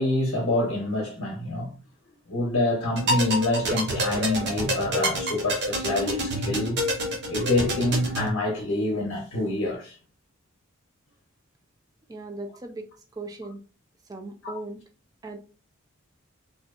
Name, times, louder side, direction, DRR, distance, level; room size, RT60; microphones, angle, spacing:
voice 1, 0.0-1.7 2.3-6.8 7.3-10.0 14.4-14.6, left 2 dB, 60° left, 0.6 m, -26 dB
sound 1, 2.9-8.3, right 1 dB, 50° right, 0.7 m, -28 dB
voice 2, 12.1-12.9 13.2-13.6 14.1-14.8 15.2-15.4, right 2 dB, 15° right, 0.3 m, -37 dB
2.6 x 2.1 x 2.3 m
head